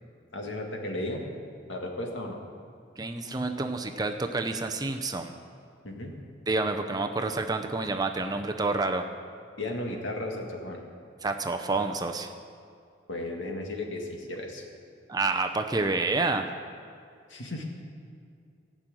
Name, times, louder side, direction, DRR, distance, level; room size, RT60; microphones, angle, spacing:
voice 1, 0.3-1.3 1.7-2.4 5.8-6.2 9.6-10.9 13.1-14.6 17.3-17.6, left 1 dB, 70° left, 1 dB, 2.0 m, -35 dB
voice 2, 3.0-5.4 6.5-9.0 11.2-12.3 15.1-16.5, right 3 dB, 20° right, 5 dB, 0.6 m, -28 dB
15.5 x 6.2 x 9.0 m, 2.4 s
head